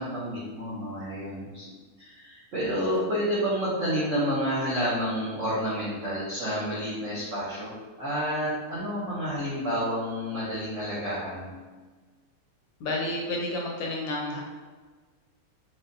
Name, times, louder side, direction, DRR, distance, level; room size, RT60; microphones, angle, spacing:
voice 1, 0.0-1.6 2.0-11.5, equal, 70° right, -8 dB, 0.7 m, -29 dB
voice 2, 12.8-14.4, left 1 dB, 75° left, -1 dB, 1.2 m, -30 dB
4.8 x 2.2 x 2.6 m, 1.4 s
omnidirectional pair, 2.3 m